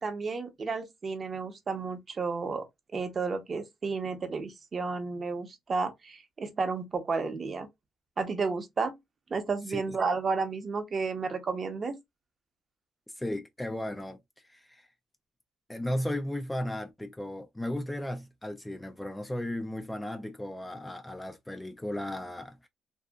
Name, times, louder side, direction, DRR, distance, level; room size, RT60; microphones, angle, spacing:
voice 1, 0.0-2.6 2.9-7.7 8.2-8.9 9.3-12.0, right 4 dB, 40° right, 0.7 m, -32 dB
voice 2, 13.2-14.2 14.5-14.9 15.7-22.7, left 1 dB, 10° left, 0.3 m, -35 dB
2.7 x 2.4 x 2.2 m
cardioid pair, 90°, 0 cm